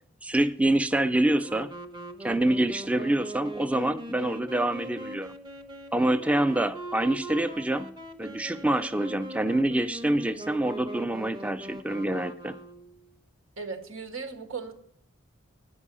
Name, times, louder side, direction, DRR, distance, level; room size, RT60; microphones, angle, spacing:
voice 1, 0.2-1.7 2.2-5.3 5.9-7.9 8.2-12.6, right 1 dB, 5° right, 11 dB, 0.3 m, -26 dB
Wind instrument woodwind instrument, 1.4-13.1, right 1 dB, 20° right, 0.8 m, -41 dB
voice 2, 13.6-14.7, right 4 dB, 90° right, 6 dB, 1.6 m, -37 dB
9.7 x 5.4 x 8.2 m, 0.68 s
head